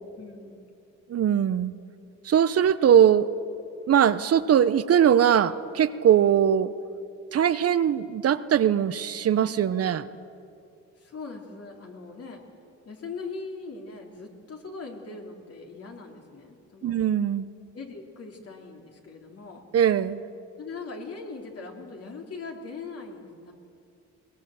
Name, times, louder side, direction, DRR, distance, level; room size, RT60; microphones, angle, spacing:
voice 1, 0.2-0.6 11.0-12.4 12.8-17.0 17.7-19.6 20.6-23.5, left 4 dB, 50° left, 2 dB, 3.3 m, -40 dB
voice 2, 1.1-1.7 2.2-3.3 3.9-6.7 7.3-10.1 16.8-17.5 19.7-20.2, right 9 dB, 50° right, 13 dB, 0.8 m, -21 dB
22.0 x 19.0 x 7.8 m, 2.5 s
cardioid pair, 90°, 30 cm